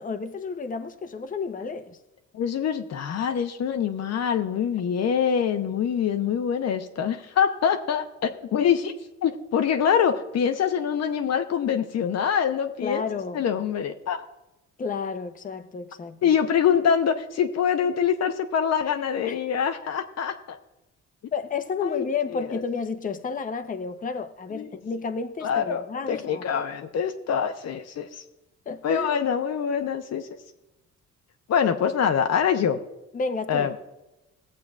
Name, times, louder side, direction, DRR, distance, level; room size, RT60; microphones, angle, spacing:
voice 1, 0.0-2.0 12.8-13.4 14.8-16.2 19.2-19.4 21.3-26.4 28.7-29.1 33.1-33.8, left 5 dB, 25° left, 0.7 m, -31 dB
voice 2, 2.3-8.9 9.2-13.1 13.3-14.2 16.2-20.6 21.8-22.1 22.3-22.6 24.5-24.7 25.4-25.8 26.1-28.2 28.8-30.3 31.5-32.8 33.5-33.7, left 7 dB, 60° left, 0.7 m, -24 dB
19.0 x 7.6 x 2.4 m
cardioid pair, 90°, 30 cm